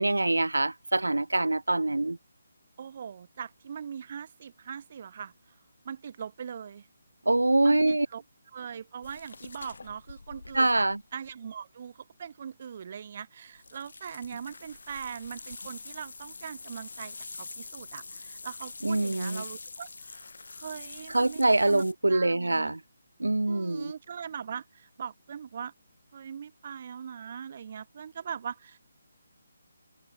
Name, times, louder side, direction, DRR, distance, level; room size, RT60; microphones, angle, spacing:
voice 1, 0.0-2.2 7.3-8.1 10.5-11.0 18.8-19.4 21.1-22.8 23.2-23.9, right 2 dB, 85° right, 0.8 m, -24 dB
voice 2, 2.8-5.3 5.8-6.9 7.6-8.2 8.5-10.9 11.1-21.8 22.1-22.7 23.5-25.7 26.1-28.8, right 7 dB, 45° right, 7.1 m, -41 dB
sound 1, 9.0-11.3 13.6-21.9, left 4 dB, 65° left, 5.6 m, -45 dB
figure-of-eight pair, 150°, 0 cm